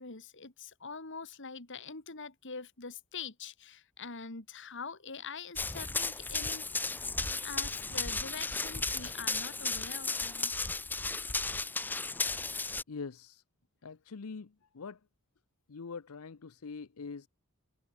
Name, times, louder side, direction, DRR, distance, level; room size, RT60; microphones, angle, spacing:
voice 1, 0.0-6.7 7.4-10.5, left 5 dB, 55° left, 2.5 m, -44 dB
Run, 5.6-12.8, left 3 dB, 10° left, 0.4 m, -34 dB
voice 2, 12.9-13.4 13.8-15.0 15.7-17.3, left 4 dB, 80° left, 0.7 m, -43 dB
head